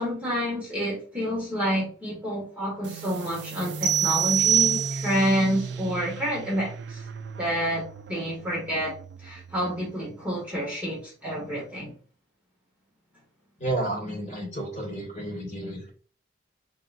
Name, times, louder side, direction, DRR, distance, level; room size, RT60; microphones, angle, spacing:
voice 1, 0.0-7.0 7.4-8.9 9.2-11.9, equal, 5° right, -7 dB, 1.3 m, -28 dB
sound 1, 2.8-10.1, right 5 dB, 65° right, 0.3 m, -38 dB
sound 2, 3.8-5.3, right 9 dB, 80° right, 0.7 m, -23 dB
voice 2, 13.6-15.9, right 2 dB, 35° left, -4 dB, 2.0 m, -31 dB
3.8 x 3.7 x 2.5 m, 0.41 s
head